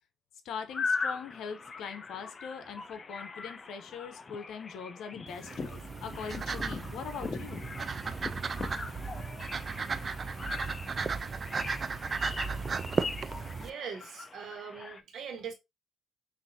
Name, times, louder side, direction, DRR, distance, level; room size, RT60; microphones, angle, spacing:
voice 1, 0.4-7.7, left 6 dB, 80° left, 0.8 m, -41 dB
sound 1, 0.7-15.0, left 4 dB, 35° left, 0.6 m, -40 dB
sound 2, 5.3-13.7, right 5 dB, 40° right, 0.4 m, -35 dB
voice 2, 13.6-15.5, right 6 dB, 70° right, 1.3 m, -41 dB
5.9 x 2.7 x 2.7 m
cardioid pair, 90°, 0 cm